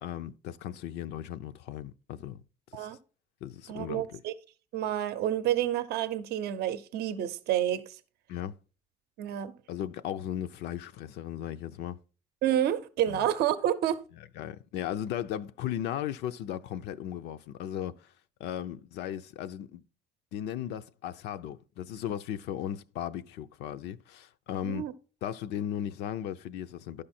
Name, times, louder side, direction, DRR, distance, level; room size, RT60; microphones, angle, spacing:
voice 1, 0.0-2.4 2.7-2.9 3.4-4.2 8.3-8.6 9.7-12.0 13.1-13.2 14.4-18.1 18.4-19.8 20.3-24.9 25.2-27.0, left 10 dB, 80° left, 0.5 m, -36 dB
voice 2, 3.7-4.3 4.7-8.0 9.2-9.5 12.4-14.0 24.6-24.9, right 11 dB, 70° right, 0.6 m, -29 dB
11.5 x 5.1 x 4.3 m
cardioid pair, 110°, 17 cm